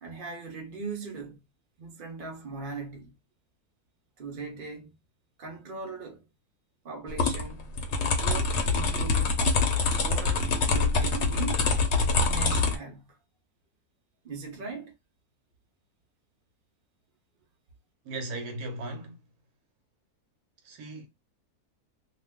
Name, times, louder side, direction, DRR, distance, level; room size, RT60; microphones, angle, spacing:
voice 1, 0.0-1.4 1.8-3.1 4.2-4.9 5.4-6.2 6.8-7.7 8.0-9.4 9.8-11.7 12.1-13.1 14.2-14.9, right 4 dB, 45° right, 0.7 m, -39 dB
sound 1, 7.1-12.7, left 3 dB, 60° left, 0.8 m, -25 dB
voice 2, 18.0-19.2 20.6-21.1, right 2 dB, 75° right, 1.2 m, -37 dB
2.5 x 2.4 x 3.5 m
omnidirectional pair, 1.7 m